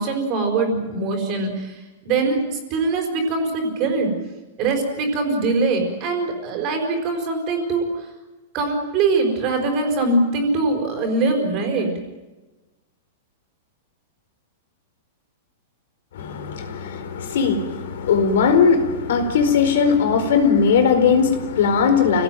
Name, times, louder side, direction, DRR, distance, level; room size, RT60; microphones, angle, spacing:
voice 1, 0.0-4.1 4.6-7.8 8.5-11.9, right 3 dB, 25° right, 4 dB, 4.8 m, -22 dB
voice 2, 16.1-22.2, left 6 dB, 60° left, 7 dB, 4.4 m, -19 dB
29.0 x 18.0 x 9.3 m, 1.1 s
supercardioid pair, 180°, 0 cm